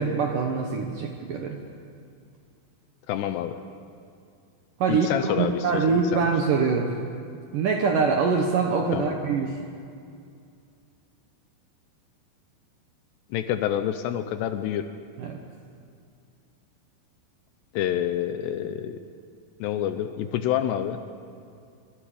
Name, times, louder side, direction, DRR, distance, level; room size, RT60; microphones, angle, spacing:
voice 1, 0.0-1.6 4.8-6.9 7.5-9.6 15.2-15.4, right 5 dB, 70° right, 2 dB, 2.0 m, -24 dB
voice 2, 3.1-3.6 4.9-6.3 8.9-9.3 13.3-14.9 17.7-19.0 19.6-21.0, left 11 dB, 80° left, 9 dB, 2.6 m, -28 dB
24.0 x 24.0 x 5.1 m, 2.4 s
omnidirectional pair, 5.4 m